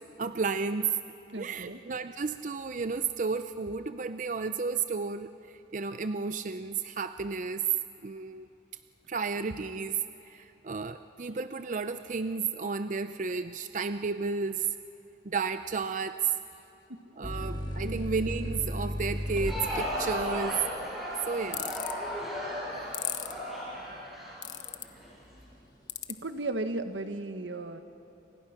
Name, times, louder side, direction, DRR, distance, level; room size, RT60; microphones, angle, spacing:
voice 1, 0.2-0.9 1.4-5.3 5.7-7.6 8.0-8.5 9.1-10.0 10.3-14.7 15.2-16.3 17.2-20.6 21.3-21.9, right 5 dB, 45° right, 10 dB, 0.5 m, -32 dB
voice 2, 1.3-1.8 16.9-17.0 17.8-18.1 26.1-27.8, right 2 dB, 90° right, 8 dB, 1.4 m, -35 dB
sound 1, 17.2-24.5 24.9-25.7, equal, 25° left, 1.9 m, -37 dB
Crowd, 19.2-25.1, equal, ahead, 7.2 m, -35 dB
sound 2, 21.5-21.9 22.9-23.3 24.4-24.8 25.9-26.1, left 13 dB, 80° left, 1.2 m, -34 dB
29.5 x 26.0 x 5.9 m, 2.8 s
head